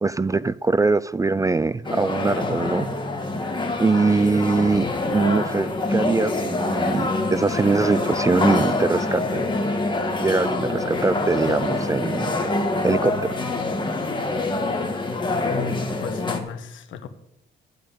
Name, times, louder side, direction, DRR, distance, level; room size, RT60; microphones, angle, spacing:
voice 1, 0.0-2.9 3.8-9.5 10.2-12.3 12.8-13.3, right 3 dB, 15° right, 0.3 m, -22 dB
sound 1, 1.8-16.4, left 2 dB, 25° left, 2.0 m, -25 dB
voice 2, 15.4-17.1, left 6 dB, 75° left, 1.3 m, -33 dB
12.5 x 5.1 x 9.0 m
cardioid pair, 90°, 20 cm